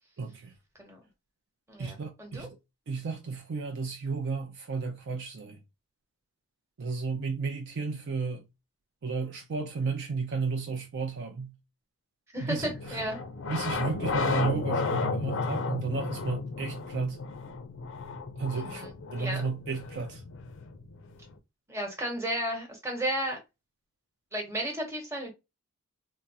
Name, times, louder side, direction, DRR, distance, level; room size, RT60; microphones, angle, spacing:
voice 1, 0.2-0.5 1.8-2.6 2.9-5.6 6.8-8.4 9.0-11.6 12.4-13.0 13.5-17.2 18.4-20.2, right 4 dB, 50° right, 0.4 m, -33 dB
voice 2, 1.7-2.5 12.3-13.2 18.5-19.4 21.7-23.4 24.3-25.3, right 1 dB, 10° right, 1.0 m, -34 dB
sound 1, 12.6-21.3, left 3 dB, 55° left, 0.4 m, -33 dB
3.5 x 2.0 x 2.7 m
head